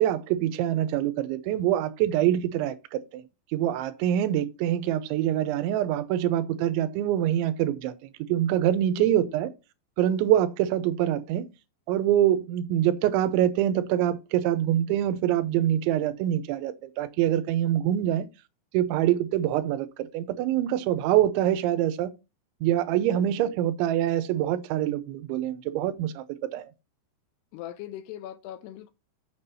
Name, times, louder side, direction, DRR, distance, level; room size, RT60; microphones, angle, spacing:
voice 1, 0.0-3.2 3.5-9.5 10.0-11.5 11.9-18.3 18.7-22.1 22.6-26.6, right 12 dB, 90° right, 3.1 m, -25 dB
voice 2, 8.9-9.3 23.1-23.6 27.5-28.9, left 12 dB, 80° left, 2.4 m, -41 dB
7.1 x 6.8 x 4.1 m
omnidirectional pair, 5.2 m